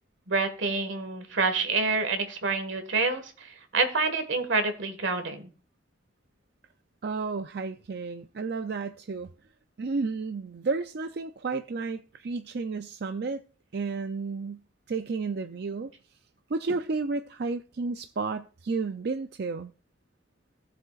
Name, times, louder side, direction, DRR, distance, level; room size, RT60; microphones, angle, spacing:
voice 1, 0.3-5.5, right 3 dB, 80° right, 1.6 m, -27 dB
voice 2, 7.0-9.3 9.8-13.4 13.7-15.9 16.5-19.7, right 4 dB, 55° right, 0.5 m, -32 dB
16.5 x 7.7 x 2.4 m
head